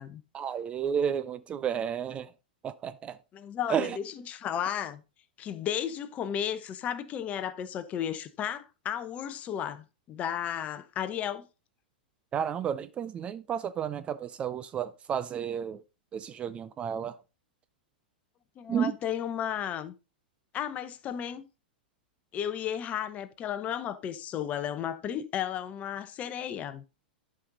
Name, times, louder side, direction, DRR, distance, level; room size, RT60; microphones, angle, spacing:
voice 1, 0.3-2.3 2.6-3.2 3.7-4.0 12.3-15.8 16.1-17.2 18.7-18.9, right 8 dB, 20° right, 0.4 m, -31 dB
voice 2, 3.3-5.0 5.4-11.4 18.6-19.9 20.5-21.5 22.3-26.8, left 9 dB, 30° left, 0.9 m, -34 dB
11.0 x 5.5 x 3.8 m
figure-of-eight pair, 100°, 5 cm